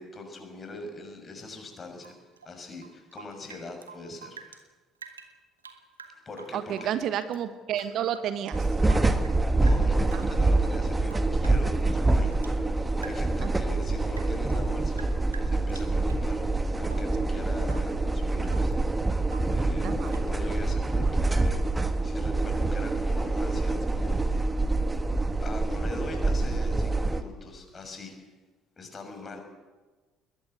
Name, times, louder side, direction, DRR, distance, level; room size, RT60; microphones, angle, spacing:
voice 1, 0.0-2.2 2.4-4.6 6.2-6.9 7.8-7.9 8.9-9.3 9.6-15.1 15.5-16.5 16.8-18.7 19.5-24.2 25.4-28.3 28.8-29.4, left 2 dB, 30° left, 4 dB, 6.6 m, -41 dB
Rain / Drip, 2.0-4.6 4.9-7.4 7.7-9.4 9.7-10.3 10.6-12.6 13.0-13.4 13.8-16.3 16.8-17.2 17.6-18.0 18.2-18.8 19.3-19.6 20.1-20.3, right 5 dB, 80° right, 1.4 m, -49 dB
voice 2, 6.5-8.7 10.1-10.3 13.4-13.5 19.8-20.2, right 10 dB, 50° right, 12 dB, 1.2 m, -31 dB
sound 1, 8.5-27.2, right 2 dB, 15° right, 1.5 m, -26 dB
21.5 x 20.0 x 8.1 m, 1.3 s
figure-of-eight pair, 55°, 0 cm